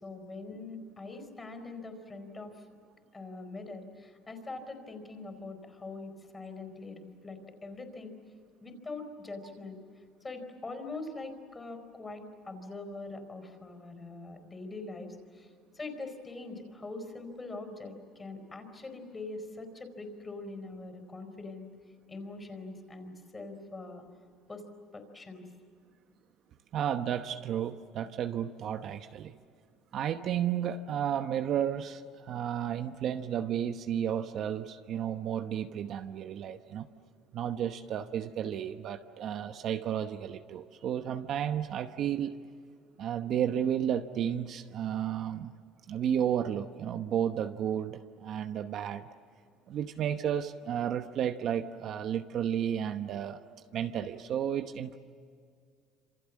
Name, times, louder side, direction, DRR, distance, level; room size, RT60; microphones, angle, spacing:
voice 1, 0.0-2.5 3.1-8.1 8.6-9.8 10.2-15.5 15.7-21.7 22.1-24.0 24.5-24.7 24.9-25.4, left 3 dB, 15° left, 7 dB, 4.5 m, -43 dB
voice 2, 26.7-29.4 29.9-32.0 32.3-36.9 37.3-42.4 43.0-45.5 45.9-49.1 49.7-53.4 53.7-55.0, right 9 dB, 45° right, 8 dB, 1.0 m, -32 dB
27.5 x 27.5 x 7.4 m, 2.2 s
cardioid pair, 145°, 0 cm